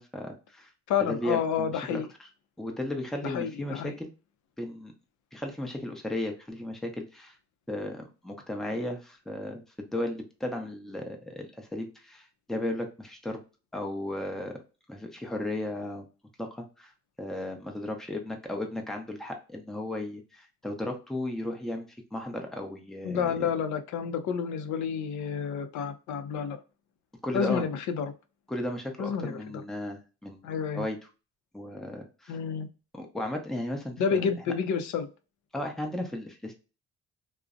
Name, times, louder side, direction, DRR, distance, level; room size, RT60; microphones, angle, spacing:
voice 1, 0.0-0.7 1.1-2.3 2.6-4.1 4.6-4.9 5.3-7.4 7.7-13.4 13.7-14.6 14.9-16.1 16.4-16.9 17.2-23.3 27.2-27.6 28.5-30.4 30.7-31.0 31.5-32.4 32.9-34.2 35.5-36.5, left 1 dB, ahead, 3 dB, 0.5 m, -35 dB
voice 2, 0.9-2.1 3.2-3.9 23.0-26.6 27.3-28.1 29.0-29.6 30.4-30.9 32.3-32.7 34.0-35.1, left 7 dB, 70° left, 8 dB, 0.5 m, -30 dB
2.5 x 2.0 x 2.4 m, 0.32 s
cardioid pair, 90°, 30 cm